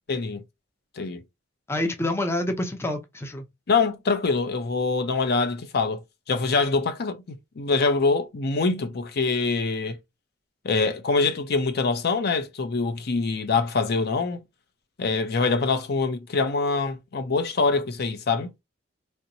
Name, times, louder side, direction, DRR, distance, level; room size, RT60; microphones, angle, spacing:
voice 1, 0.1-0.4 1.0-1.2 3.7-6.0 6.3-7.2 7.6-10.0 10.6-14.4 15.0-18.5, left 4 dB, 55° left, 0.6 m, -24 dB
voice 2, 1.7-3.4, left 1 dB, 15° left, 0.5 m, -27 dB
3.2 x 3.0 x 2.6 m
head